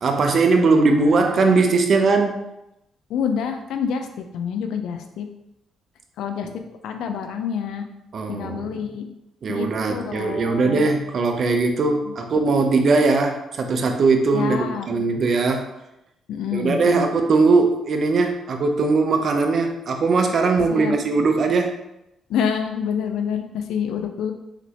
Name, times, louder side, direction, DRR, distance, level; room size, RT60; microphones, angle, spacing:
voice 1, 0.0-2.4 8.1-8.7 9.4-15.7 16.5-21.8, right 3 dB, 55° right, 5 dB, 0.7 m, -20 dB
voice 2, 0.6-1.5 3.1-4.1 4.3-5.3 6.2-6.5 6.8-7.9 8.3-9.1 9.5-10.9 12.0-12.1 14.3-14.9 16.3-17.1 20.7-21.0 22.3-24.3, left 7 dB, 80° left, 5 dB, 0.5 m, -27 dB
5.9 x 3.1 x 2.9 m, 0.86 s
cardioid pair, 90°, 0 cm